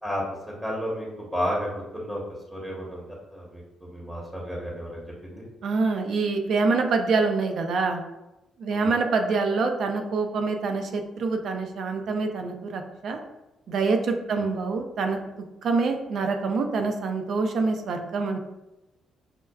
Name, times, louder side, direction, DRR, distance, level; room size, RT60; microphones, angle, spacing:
voice 1, 0.6-2.2 2.5-5.4 8.7-8.9 14.3-14.5, equal, ahead, -4 dB, 0.9 m, -32 dB
voice 2, 5.6-8.0 8.6-13.2 13.7-15.2 15.6-18.4, right 4 dB, 65° right, 5 dB, 0.5 m, -25 dB
5.7 x 2.2 x 2.3 m, 0.99 s
cardioid pair, 90°, 0 cm